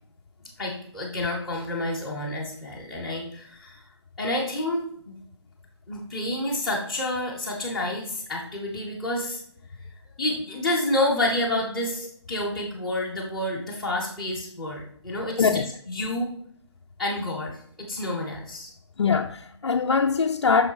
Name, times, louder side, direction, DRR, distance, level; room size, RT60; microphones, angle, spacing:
voice 1, 0.6-3.8 4.2-5.1 5.9-9.4 10.2-15.5 15.9-16.3 17.0-18.7, left 1 dB, ahead, 0.8 m, -29 dB
voice 2, 19.0-20.7, left 5 dB, 65° left, 0.5 m, -22 dB
6.4 x 4.6 x 4.5 m
hypercardioid pair, 170°, 15 cm